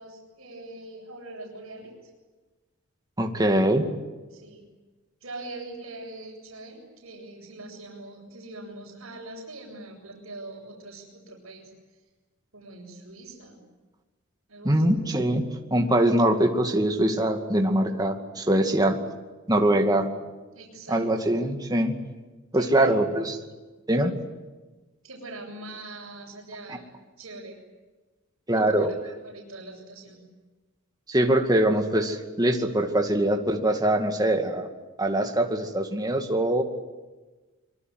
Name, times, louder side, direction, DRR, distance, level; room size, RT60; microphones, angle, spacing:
voice 1, 0.0-1.9 4.3-4.6 5.2-12.0 12.5-13.6 14.5-14.8 20.5-21.0 22.5-23.1 25.0-26.8 27.2-27.6 28.5-28.9 29.2-30.3, right 2 dB, 70° right, -6 dB, 6.9 m, -42 dB
voice 2, 3.2-3.9 14.6-19.0 19.5-20.1 20.9-21.9 22.5-23.4 23.9-24.1 26.7-26.8 28.5-28.9 31.1-34.7 35.0-36.6, right 1 dB, 20° right, 4 dB, 2.3 m, -23 dB
24.5 x 23.5 x 9.5 m, 1.2 s
head